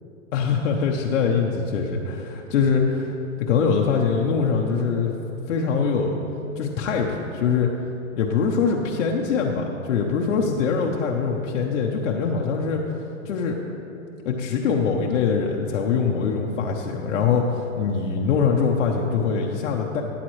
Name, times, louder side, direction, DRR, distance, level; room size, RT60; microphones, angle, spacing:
voice 1, 0.3-5.1 5.5-6.1 6.6-7.7 8.2-12.8 13.2-13.6 14.2-20.0, left 5 dB, 65° left, 0 dB, 0.9 m, -23 dB
13.0 x 9.0 x 3.2 m, 2.9 s
hypercardioid pair, 155°, 40 cm